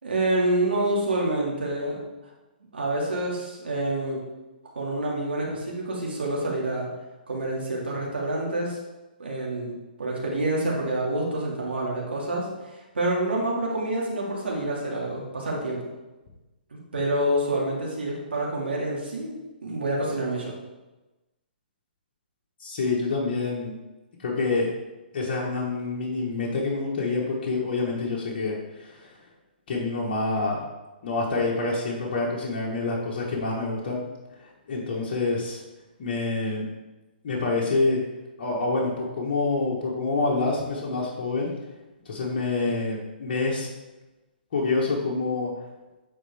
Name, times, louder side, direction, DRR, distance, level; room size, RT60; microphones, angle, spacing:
voice 1, 0.0-2.0 2.7-4.2 4.7-6.9 7.3-8.8 9.2-9.7 10.0-15.8 16.9-20.5, right 1 dB, 90° right, -3 dB, 2.3 m, -27 dB
voice 2, 22.6-23.8 24.2-24.7 25.1-29.1 29.7-30.6 31.0-34.0 34.7-35.6 36.0-36.7 37.2-38.0 38.4-41.5 42.0-43.7 44.5-45.5, left 3 dB, 50° left, -4 dB, 1.4 m, -27 dB
8.8 x 4.5 x 3.5 m, 1.1 s
hypercardioid pair, 140°, 6 cm